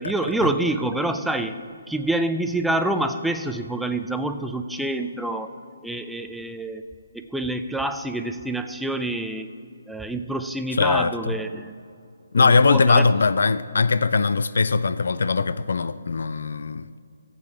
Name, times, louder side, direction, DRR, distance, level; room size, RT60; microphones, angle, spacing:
voice 1, 0.0-5.5 5.8-6.8 7.1-9.5 9.9-11.7 12.3-13.0, right 1 dB, ahead, 0.4 m, -27 dB
voice 2, 10.7-11.4 12.3-17.1, left 4 dB, 70° left, 0.3 m, -21 dB
14.5 x 8.4 x 3.6 m
hypercardioid pair, 150°, 0 cm